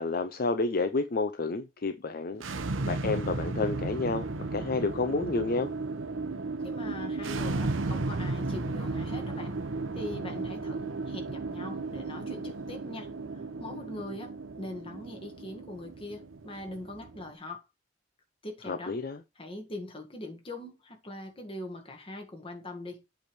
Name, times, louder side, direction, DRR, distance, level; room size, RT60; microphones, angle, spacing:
voice 1, 0.0-2.4 2.8-5.7 18.6-19.2, left 3 dB, 50° left, 0.6 m, -30 dB
sound 1, 2.3-17.3, right 3 dB, 85° right, 0.9 m, -34 dB
voice 2, 6.6-9.6 9.9-13.1 13.6-17.6 18.4-19.0 19.4-23.0, left 1 dB, 30° left, 1.8 m, -42 dB
8.0 x 3.4 x 5.9 m
head